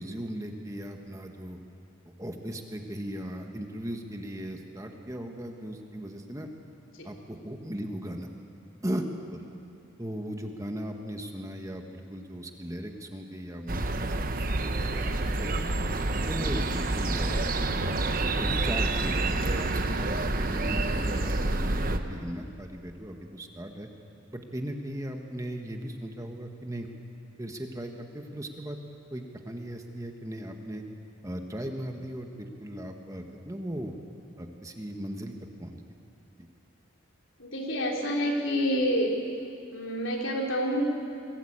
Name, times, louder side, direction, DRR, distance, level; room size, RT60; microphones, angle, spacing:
voice 1, 0.0-1.6 2.2-6.5 7.0-8.3 8.8-9.1 9.3-9.4 10.0-15.5 16.1-17.5 18.3-19.7 20.0-23.9 24.3-26.9 27.4-28.8 29.1-30.8 31.2-33.9 34.4-35.3 35.6-35.8 36.4-36.5, equal, 15° right, 4 dB, 1.4 m, -37 dB
sound 1, 13.7-22.0, right 2 dB, 45° right, 1.1 m, -28 dB
voice 2, 37.4-39.1 39.7-40.8, equal, 75° left, 0 dB, 3.6 m, -28 dB
22.5 x 17.5 x 8.8 m, 2.6 s
head